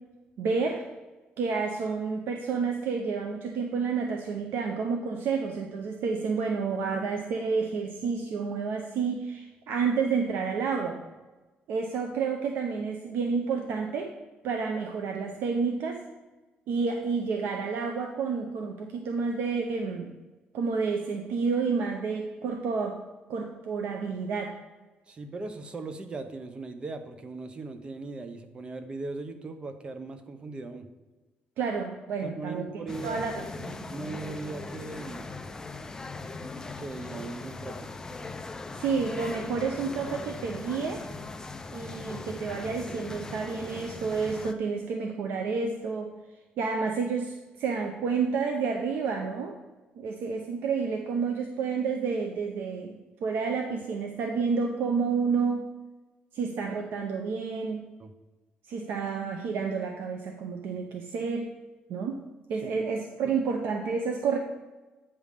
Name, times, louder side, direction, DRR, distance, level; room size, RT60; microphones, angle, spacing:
voice 1, 0.4-0.8 1.4-11.0 11.7-14.1 14.4-16.0 16.7-20.1 20.5-23.0 23.3-24.5 31.6-32.7 33.0-33.8 38.8-41.1 41.7-46.1 46.6-49.5 50.0-55.7 56.3-57.9 58.7-61.5 61.9-62.2 62.5-64.4, right 5 dB, 75° right, 3 dB, 0.7 m, -30 dB
voice 2, 25.1-30.9 32.2-33.2 33.9-35.4 36.8-37.9 58.0-58.1 62.6-62.7 63.2-63.3, right 3 dB, 30° right, 8 dB, 0.7 m, -39 dB
sound 1, 32.9-44.5, left 3 dB, 15° left, 0.4 m, -40 dB
8.7 x 3.5 x 6.5 m, 1.2 s
cardioid pair, 135°, 4 cm